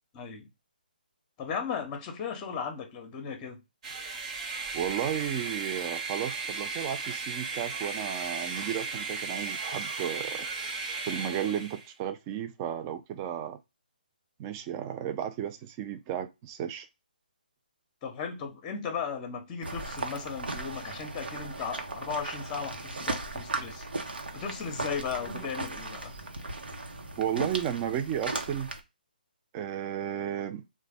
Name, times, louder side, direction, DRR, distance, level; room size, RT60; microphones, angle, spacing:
voice 1, 0.1-0.5 1.4-3.6 18.0-26.1, left 6 dB, 20° left, 0.8 m, -36 dB
sound 1, 3.8-11.9, right 4 dB, 45° right, 0.7 m, -35 dB
voice 2, 4.7-10.5 11.1-13.6 14.4-16.9 27.2-28.7 29.5-30.6, right 10 dB, 25° right, 0.4 m, -33 dB
sound 2, 19.6-28.8, right 2 dB, 85° right, 0.8 m, -37 dB
3.8 x 2.1 x 3.3 m
hypercardioid pair, 150°, 5 cm